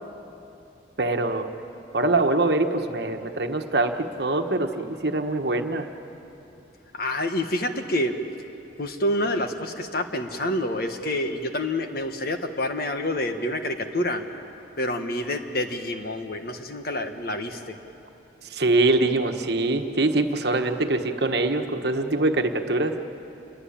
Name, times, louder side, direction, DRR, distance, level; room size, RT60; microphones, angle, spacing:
voice 1, 1.0-1.5 1.9-5.9 18.5-22.9, right 2 dB, 60° right, 6 dB, 1.3 m, -23 dB
voice 2, 6.9-8.1 8.8-14.2 14.8-17.8, left 1 dB, 50° left, 6 dB, 1.6 m, -27 dB
28.0 x 22.0 x 8.7 m, 2.9 s
head